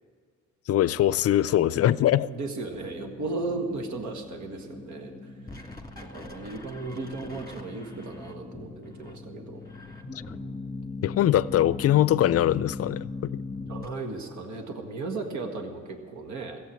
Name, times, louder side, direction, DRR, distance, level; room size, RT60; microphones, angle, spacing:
voice 1, 0.7-2.3 11.0-13.4, left 12 dB, 50° left, 18 dB, 0.5 m, -22 dB
voice 2, 2.2-5.3 6.0-9.6 13.7-16.6, right 3 dB, 70° right, 4 dB, 1.7 m, -35 dB
sound 1, 2.7-13.9, left 3 dB, 10° left, 1.9 m, -39 dB
15.0 x 8.0 x 8.7 m, 2.1 s
cardioid pair, 90°, 30 cm